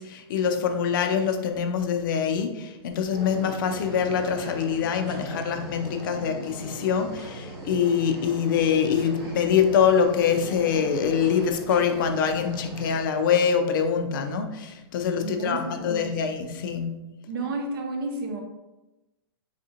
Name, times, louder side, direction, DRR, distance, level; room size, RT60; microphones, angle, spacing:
voice 1, 0.0-16.9, left 7 dB, 50° left, 6 dB, 0.4 m, -24 dB
sound 1, 3.1-13.0, equal, 30° right, 0.9 m, -39 dB
voice 2, 15.2-16.1 17.3-18.4, right 3 dB, 60° right, 3 dB, 0.7 m, -32 dB
3.5 x 2.5 x 2.8 m, 1.0 s
hypercardioid pair, 160°, 14 cm